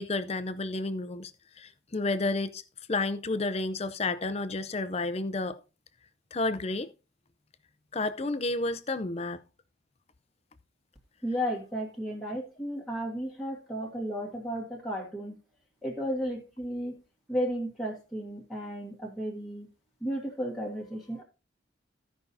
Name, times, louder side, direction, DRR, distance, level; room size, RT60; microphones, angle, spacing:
voice 1, 0.0-1.3 1.6-2.6 2.9-5.6 6.3-6.9 7.9-9.4, left 2 dB, 30° left, 0.5 m, -31 dB
voice 2, 11.2-15.4 15.8-16.9 17.3-19.7 20.0-21.2, equal, ahead, 1.5 m, -34 dB
15.5 x 5.5 x 2.7 m
head